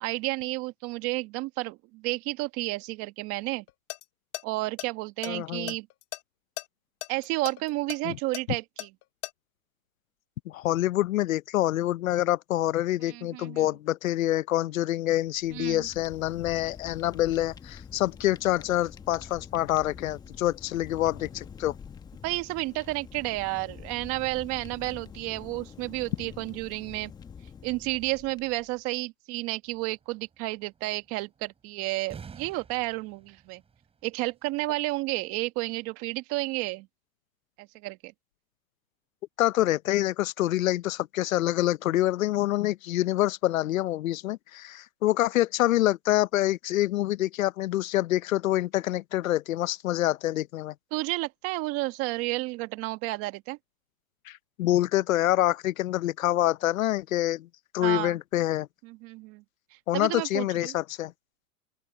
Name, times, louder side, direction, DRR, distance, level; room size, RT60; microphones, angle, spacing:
voice 1, 0.0-3.6 4.4-5.9 7.1-8.9 13.1-13.6 15.5-15.9 22.2-27.1 27.6-33.6 34.0-36.9 37.6-38.1 50.9-53.6 57.8-58.2 58.8-59.4 59.7-60.8, right 22 dB, 30° right, 1.6 m, -31 dB
sound 1, 3.7-4.0 4.3-4.4 4.8-6.2 6.6-6.7 7.0-9.3, left 22 dB, 30° left, 3.2 m, -36 dB
voice 2, 5.3-5.7 8.0-8.2 10.5-21.7 39.4-50.7 54.3-57.5 57.7-58.7 59.9-61.1, left 14 dB, 65° left, 0.8 m, -26 dB
Fire, 15.2-28.8, left 6 dB, 10° left, 0.9 m, -46 dB
sound 2, 29.7-34.6, right 6 dB, 15° right, 6.7 m, -50 dB
open air
hypercardioid pair, 150°, 44 cm